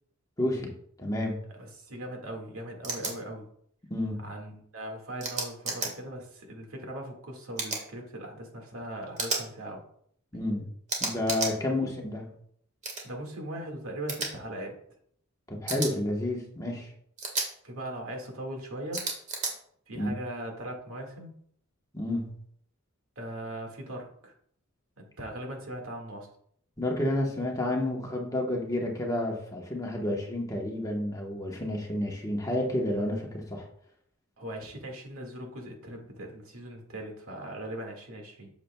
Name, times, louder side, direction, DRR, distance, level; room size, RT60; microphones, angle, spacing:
voice 1, 0.4-0.7 1.0-1.4 3.9-4.2 10.3-10.7 11.0-12.3 15.5-16.9 19.9-20.1 21.9-22.4 26.8-33.7, left 1 dB, 15° left, 0 dB, 1.1 m, -30 dB
voice 2, 1.6-3.5 4.2-9.8 11.7-11.9 13.0-14.8 17.6-19.1 19.9-21.3 23.2-24.3 25.0-26.3 34.4-38.5, right 1 dB, 80° right, 1 dB, 1.9 m, -39 dB
sound 1, 2.8-3.1 5.2-5.9 7.6-7.8 9.2-9.4 10.9-11.5 12.8-13.0 14.1-14.3 15.7-15.9 17.2-17.5 18.9-19.5, right 3 dB, 35° right, 1.7 m, -31 dB
8.5 x 7.0 x 2.3 m, 0.65 s
head